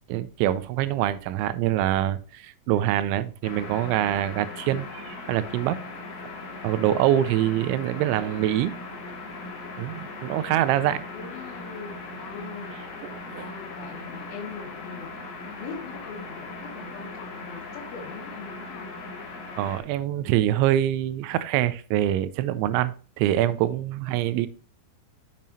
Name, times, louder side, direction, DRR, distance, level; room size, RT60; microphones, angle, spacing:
voice 1, 0.1-5.8 6.6-8.7 9.8-11.0 13.0-13.5 19.6-24.5, right 12 dB, 85° right, 2.9 m, -25 dB
sound 1, 3.4-19.8, left 3 dB, 55° left, 3.2 m, -39 dB
voice 2, 11.1-13.0 13.3-15.3 15.6-18.9 24.1-24.4, left 5 dB, 75° left, 3.8 m, -41 dB
7.4 x 7.3 x 2.7 m
omnidirectional pair, 5.5 m